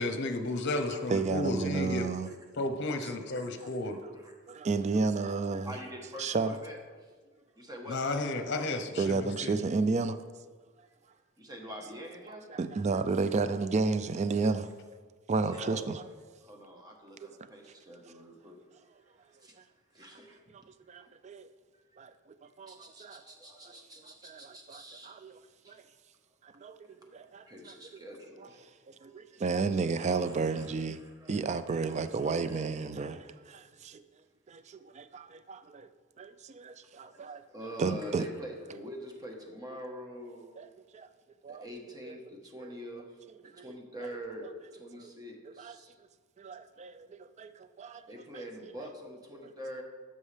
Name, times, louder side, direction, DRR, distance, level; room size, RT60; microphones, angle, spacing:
voice 1, 0.0-2.1 2.6-4.0 7.9-9.1 9.4-9.6, left 2 dB, 60° left, 0.8 m, -32 dB
voice 2, 1.1-2.3 4.5-5.8 6.2-6.6 9.0-10.2 12.3-14.7 15.3-16.0 20.5-20.6 20.9-21.5 22.0-22.1 22.6-23.2 24.2-25.4 25.7-25.8 26.4-27.7 28.4-28.5 28.9-31.0 31.3-34.0 34.5-35.9 36.2-37.4 37.8-38.3 40.6-40.7 40.9-41.1 41.4-41.6 42.1-42.2 42.6-42.8 43.6-43.7 44.9-45.1 45.6-45.7 46.4-48.4 49.4-49.5, right 4 dB, 35° right, 0.4 m, -32 dB
voice 3, 5.6-6.8 7.6-8.8 11.4-12.5 15.4-15.9 16.4-18.6 19.4-19.5 19.9-20.4 21.0-21.1 22.7-25.2 25.6-25.8 27.4-28.6 29.3-29.4 29.8-31.3 31.9-32.9 36.7-40.6 41.5-43.1 43.6-45.9 48.1-49.8, equal, 20° right, 1.2 m, -45 dB
12.5 x 5.5 x 3.4 m
head